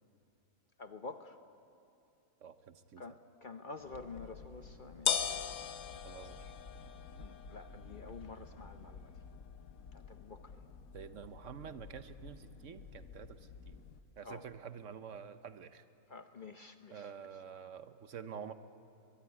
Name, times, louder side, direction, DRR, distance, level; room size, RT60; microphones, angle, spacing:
voice 1, 0.8-1.4 3.0-5.2 7.2-9.1 9.9-10.7 14.2-14.4 16.1-17.1, left 4 dB, 45° left, 8 dB, 0.8 m, -49 dB
voice 2, 2.4-3.2 6.0-6.5 10.9-13.8 14.2-15.8 16.9-18.5, right 7 dB, 65° right, 11 dB, 1.1 m, -48 dB
Parking Lot Ambience, 3.8-9.4, right 2 dB, 85° right, 1.7 m, -60 dB
sound 1, 3.9-14.0, left 7 dB, 75° left, 1.3 m, -42 dB
23.0 x 21.5 x 9.9 m, 2.7 s
omnidirectional pair, 1.5 m